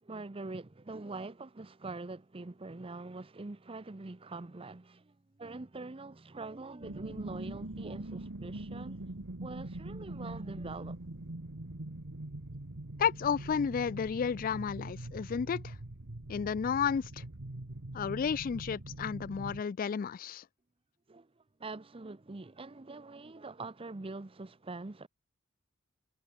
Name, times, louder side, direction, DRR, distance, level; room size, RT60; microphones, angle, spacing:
voice 1, 0.0-9.0 9.4-11.0 21.1-25.1, right 3 dB, 25° right, 0.7 m, -44 dB
sound 1, 6.8-19.6, right 1 dB, 70° right, 1.6 m, -43 dB
voice 2, 13.0-15.7 16.3-17.2 17.9-20.4, left 7 dB, 45° left, 0.3 m, -32 dB
head